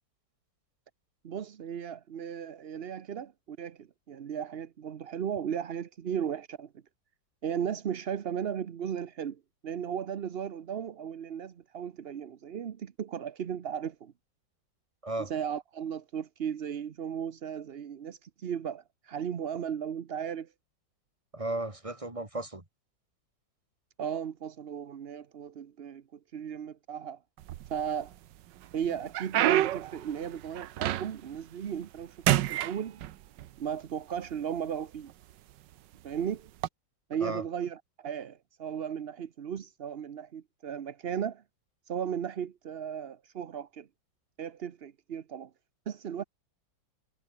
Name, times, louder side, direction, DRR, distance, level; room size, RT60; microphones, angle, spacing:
voice 1, 1.2-6.8 7.4-14.1 15.2-20.5 24.0-27.2 27.7-28.1 28.7-33.0 33.6-35.1 36.0-36.5 37.1-41.4 41.9-43.9 44.4-45.5 45.9-46.2, right 8 dB, 55° right, 0.7 m, -36 dB
voice 2, 21.3-22.6 37.2-37.4, right 2 dB, 15° right, 3.0 m, -34 dB
sound 1, 27.4-28.1 28.6-31.4 31.7-32.0 32.3-33.5 34.3-34.4 35.1-35.3 36.5-36.7, right 13 dB, 70° right, 1.4 m, -28 dB
omnidirectional pair, 2.1 m